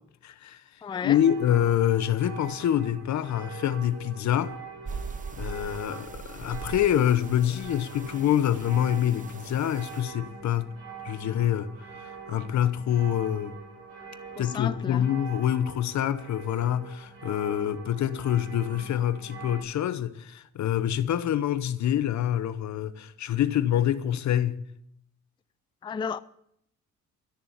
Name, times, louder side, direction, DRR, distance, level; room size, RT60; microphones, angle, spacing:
voice 1, 0.2-0.6 1.0-4.5 5.4-10.7 11.0-11.7 12.3-13.5 14.4-24.6, left 10 dB, 65° left, 1.0 m, -26 dB
voice 2, 0.8-1.2 14.4-15.0 25.8-26.2, left 6 dB, 15° left, 0.4 m, -32 dB
sound 1, 0.9-19.6, right 5 dB, 50° right, 6.4 m, -44 dB
sound 2, 4.9-10.0, right 5 dB, 25° right, 0.9 m, -41 dB
13.5 x 6.9 x 8.7 m
cardioid pair, 90°, 30 cm